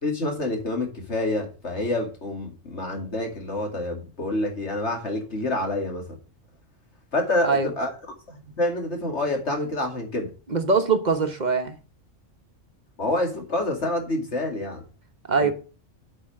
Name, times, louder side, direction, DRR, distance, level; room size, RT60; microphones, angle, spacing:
voice 1, 0.0-6.2 7.1-7.9 8.3-10.3 13.0-14.8 15.4-15.5, left 2 dB, 60° left, 2.8 m, -27 dB
voice 2, 10.5-11.8 15.3-15.5, right 4 dB, 40° right, 1.1 m, -22 dB
8.4 x 5.1 x 7.6 m
omnidirectional pair, 1.3 m